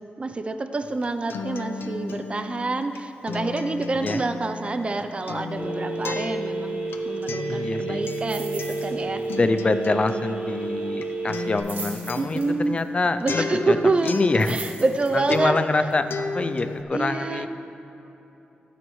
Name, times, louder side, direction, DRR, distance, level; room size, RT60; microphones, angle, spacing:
voice 1, 0.2-9.2 12.2-12.8 13.2-15.8 16.9-17.5, right 3 dB, 30° right, 8 dB, 0.5 m, -27 dB
Acoustic guitar, 0.8-15.0 15.3-16.8, left 4 dB, 85° left, 0.6 m, -34 dB
Telephone, 5.6-11.6, right 3 dB, 50° right, 1.5 m, -30 dB
voice 2, 7.5-8.0 9.4-13.8 14.0-14.6 15.1-17.5, left 3 dB, 30° left, 10 dB, 0.4 m, -25 dB
sound 1, 8.0-8.9 9.2-9.4 9.7-9.8 11.3-12.8 14.1-15.4 15.9-16.0, right 4 dB, 70° right, 3.4 m, -39 dB
24.0 x 9.2 x 3.1 m, 3.0 s
wide cardioid pair, 145°, 4 cm